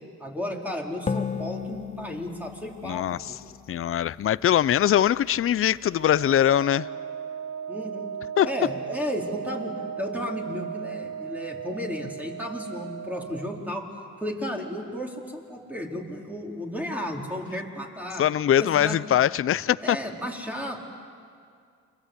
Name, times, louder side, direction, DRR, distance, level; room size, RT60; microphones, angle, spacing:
voice 1, 0.2-3.3 7.7-8.1 8.4-13.8 14.2-18.2 18.6-19.0 19.8-20.8, equal, 5° right, -1 dB, 4.5 m, -33 dB
sound 1, 1.1-4.5, left 6 dB, 25° left, 1.0 m, -35 dB
voice 2, 2.8-3.2 3.7-6.9 8.4-8.5 18.2-20.0, left 10 dB, 45° left, 18 dB, 0.6 m, -22 dB
Wind instrument woodwind instrument, 5.8-13.7, right 7 dB, 60° right, 7.1 m, -36 dB
29.5 x 24.0 x 8.3 m, 2.3 s
cardioid pair, 90°, 30 cm